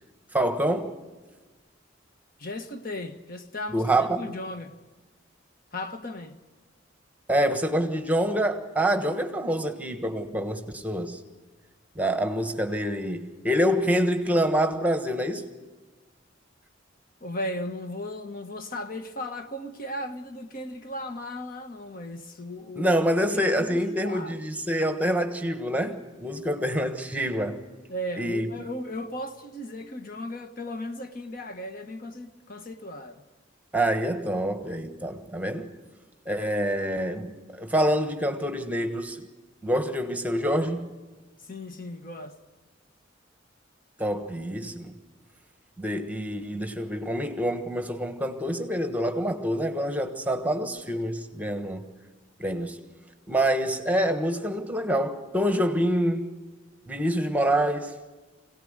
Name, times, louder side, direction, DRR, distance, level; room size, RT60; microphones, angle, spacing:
voice 1, 0.3-0.9 3.7-4.2 7.3-11.2 11.9-15.5 22.8-27.6 28.2-28.5 33.7-35.7 36.2-39.2 39.6-40.9 44.0-44.9 45.8-51.9 52.4-52.8 53.3-56.3 56.9-57.9, equal, 10° right, 1.3 m, -26 dB
voice 2, 2.4-4.7 5.7-6.4 17.2-23.0 23.3-24.4 27.9-33.2 41.5-42.3, left 1 dB, 50° left, 1.4 m, -36 dB
24.5 x 18.0 x 6.6 m
head